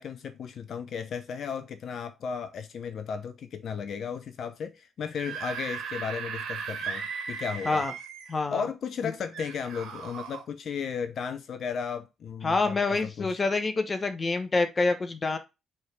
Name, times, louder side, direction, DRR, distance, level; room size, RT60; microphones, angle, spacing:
voice 1, 0.0-7.8 8.5-13.4, left 6 dB, 60° left, 0.6 m, -35 dB
Screaming / Screech, 5.0-8.4 9.3-10.4, right 6 dB, 70° right, 1.8 m, -37 dB
voice 2, 8.3-8.6 12.4-15.4, left 3 dB, 40° left, 1.1 m, -26 dB
7.7 x 3.6 x 3.8 m
hypercardioid pair, 45°, 0 cm